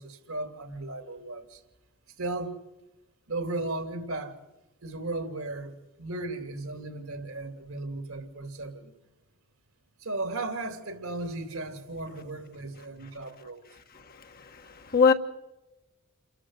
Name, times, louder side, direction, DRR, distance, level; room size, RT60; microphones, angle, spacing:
voice 1, 0.0-1.6 2.2-2.6 3.3-4.4 4.8-8.9 10.0-13.6, right 2 dB, 70° right, 2.9 m, -35 dB
voice 2, 14.1-15.1, left 5 dB, 45° left, 1.4 m, -24 dB
29.5 x 14.0 x 8.0 m
head